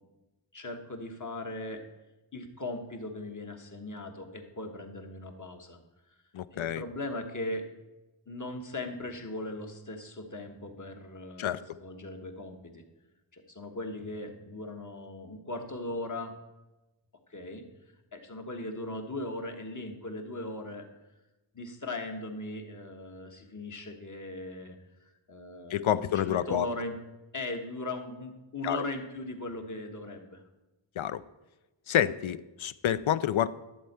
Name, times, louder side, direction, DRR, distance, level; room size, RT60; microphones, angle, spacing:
voice 1, 0.5-1.8 2.3-5.8 6.5-7.7 8.3-12.8 13.3-16.3 17.3-17.6 18.1-20.8 21.5-24.8 25.3-26.0 26.3-27.0 27.3-30.4, left 2 dB, 40° left, 4 dB, 1.3 m, -38 dB
voice 2, 6.3-6.8 11.4-11.8 25.7-26.7 28.6-28.8 31.0-31.2 31.9-33.5, left 10 dB, 75° left, 16 dB, 0.6 m, -28 dB
12.0 x 4.5 x 8.0 m, 1.0 s
wide cardioid pair, 90°, 48 cm